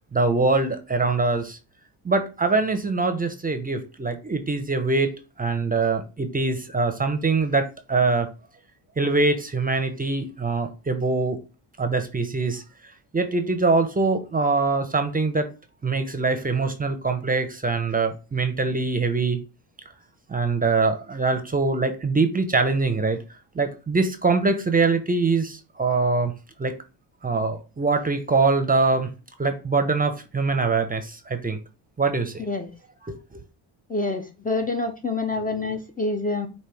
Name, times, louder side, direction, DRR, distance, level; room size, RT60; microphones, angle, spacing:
voice 1, 0.1-1.6 2.0-5.1 5.4-8.3 9.0-11.4 11.8-12.6 13.1-15.5 15.8-19.4 20.3-23.2 23.6-26.3 26.6-26.8 27.2-29.1 29.4-31.6 32.0-32.5 33.0-33.2, right 3 dB, 20° right, 0.7 m, -23 dB
voice 2, 33.9-36.5, left 3 dB, 20° left, 0.6 m, -27 dB
5.1 x 2.5 x 3.4 m
supercardioid pair, 80°, 45 cm